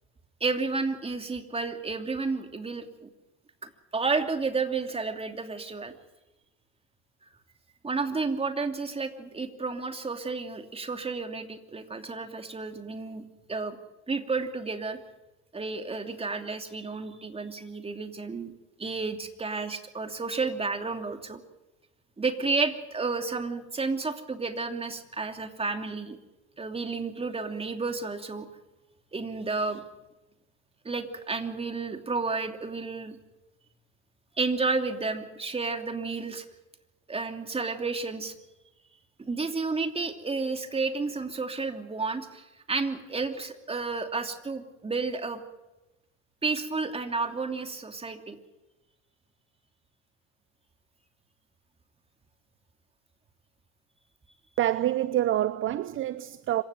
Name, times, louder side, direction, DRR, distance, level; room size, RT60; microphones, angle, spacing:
voice 1, 0.4-3.1 3.6-5.9 7.8-13.8 14.1-15.0 15.5-18.5 18.8-21.4 22.2-26.2 26.6-28.5 29.1-29.8 30.8-33.2 34.4-36.4 37.1-38.3 39.3-45.4 46.4-48.4, right 4 dB, 15° right, 2.9 m, -31 dB
voice 2, 54.6-56.6, right 13 dB, 40° right, 0.8 m, -27 dB
26.0 x 16.5 x 9.3 m
hypercardioid pair, 80°, 33 cm